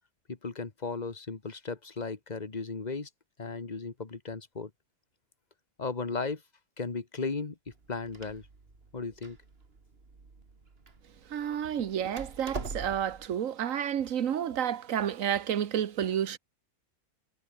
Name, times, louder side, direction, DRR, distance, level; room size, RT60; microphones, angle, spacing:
voice 1, 0.3-3.1 3.4-4.7 5.8-6.4 6.8-8.5 8.9-9.4 11.7-11.9, left 4 dB, 30° left, 1.7 m, -36 dB
Door, 7.7-13.3, right 4 dB, 45° right, 2.3 m, -44 dB
voice 2, 11.3-16.4, right 9 dB, 65° right, 1.4 m, -30 dB
omnidirectional pair, 1.5 m